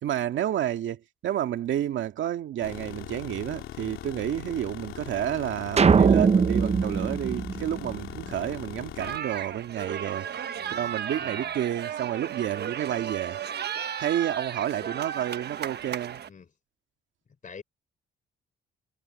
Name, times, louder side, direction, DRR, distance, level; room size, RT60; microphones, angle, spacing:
voice 1, 0.0-10.3 10.7-13.4 13.8-16.2, right 11 dB, 75° right, 2.1 m, -30 dB
sound 1, 2.6-9.2, left 13 dB, 85° left, 3.0 m, -40 dB
sound 2, 5.8-8.2, right 5 dB, 30° right, 0.8 m, -21 dB
sound 3, 9.0-16.3, right 9 dB, 55° right, 1.3 m, -34 dB
voice 2, 10.6-10.9 11.2-11.5 16.3-16.5 17.4-17.6, left 6 dB, 40° left, 3.9 m, -46 dB
cardioid pair, 90°, 20 cm